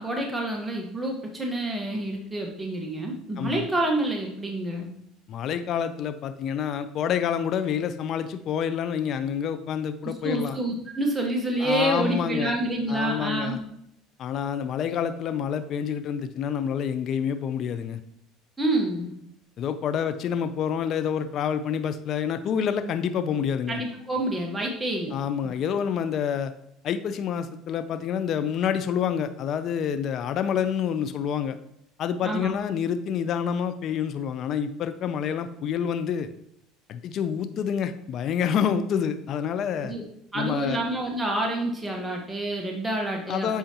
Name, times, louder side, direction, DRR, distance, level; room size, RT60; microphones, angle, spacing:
voice 1, 0.0-4.9 10.0-13.6 18.6-19.1 23.7-25.1 32.2-32.5 39.8-40.0 40.3-43.6, right 1 dB, 10° right, 0 dB, 1.3 m, -28 dB
voice 2, 5.3-10.6 11.6-12.5 12.9-13.6 14.2-18.0 19.6-23.8 25.1-26.5 26.8-31.6 32.0-36.3 36.9-39.9 40.3-40.8 43.3-43.6, left 8 dB, 50° left, 11 dB, 0.5 m, -28 dB
8.0 x 4.9 x 2.9 m, 0.77 s
supercardioid pair, 105°, 0 cm